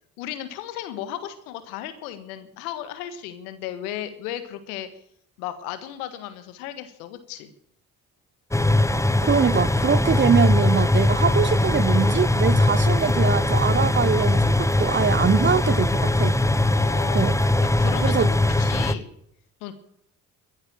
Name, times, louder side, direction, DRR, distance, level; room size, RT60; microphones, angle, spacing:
voice 1, 0.2-4.9 5.4-7.5 16.7-19.1 19.6-19.7, left 11 dB, 85° left, 1.6 m, -35 dB
sound 1, 8.5-18.9, left 1 dB, 5° left, 1.1 m, -20 dB
voice 2, 9.2-16.4 17.1-17.4 18.0-18.3, right 6 dB, 25° right, 0.6 m, -23 dB
13.5 x 11.5 x 8.8 m
hypercardioid pair, 50°, 43 cm